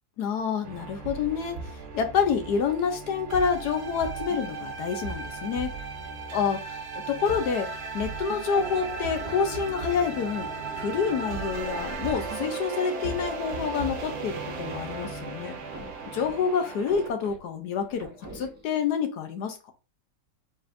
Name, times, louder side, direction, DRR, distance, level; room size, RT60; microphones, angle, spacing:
voice 1, 0.2-5.7 6.3-6.8 7.1-15.6 16.1-18.1 18.3-19.7, left 6 dB, 75° left, 6 dB, 1.2 m, -28 dB
sound 1, 0.6-17.1, right 4 dB, 65° right, 1.3 m, -36 dB
Race car auto racing / Accelerating revving vroom, 8.5-13.2, right 3 dB, 45° right, 1.0 m, -40 dB
sound 2, 15.5-18.8, right 1 dB, 10° right, 1.0 m, -46 dB
4.2 x 4.2 x 2.5 m, 0.33 s
omnidirectional pair, 1.9 m